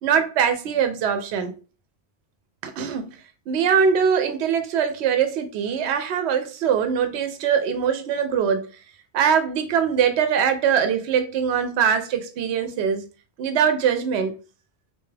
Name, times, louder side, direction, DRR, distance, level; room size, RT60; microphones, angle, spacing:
voice 1, 0.0-1.5 2.6-3.2 3.5-8.7 9.1-13.1 13.4-14.4, right 7 dB, 80° right, 0.9 m, -22 dB
3.3 x 2.8 x 3.2 m
omnidirectional pair, 1.1 m